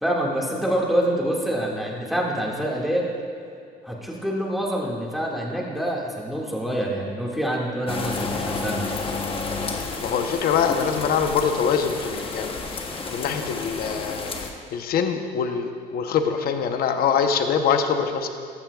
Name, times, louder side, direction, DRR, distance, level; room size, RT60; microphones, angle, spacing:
voice 1, 0.0-3.0 3.8-8.9, equal, ahead, -3 dB, 2.0 m, -26 dB
sound 1, 7.9-14.5, left 4 dB, 35° left, 1.1 m, -31 dB
voice 2, 10.0-12.5 13.1-14.3 14.7-18.3, left 6 dB, 65° left, 6 dB, 0.9 m, -24 dB
14.5 x 12.5 x 2.4 m, 2.4 s
cardioid pair, 110°, 17 cm